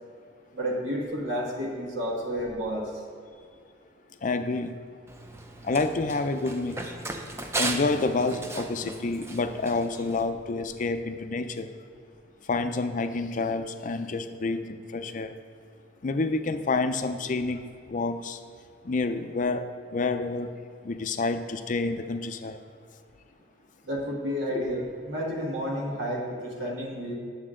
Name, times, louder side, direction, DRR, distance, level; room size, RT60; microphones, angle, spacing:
voice 1, 0.5-2.9 23.8-27.2, equal, 80° right, -3 dB, 1.4 m, -31 dB
voice 2, 4.2-4.7 5.6-6.8 7.5-11.7 12.5-15.3 16.0-17.6 17.9-18.4 18.8-19.7 19.9-20.5 20.8-22.6, left 3 dB, 45° left, 9 dB, 0.5 m, -28 dB
Run, 5.1-10.2, right 2 dB, 15° right, 0.6 m, -36 dB
9.5 x 7.1 x 3.7 m, 2.3 s
head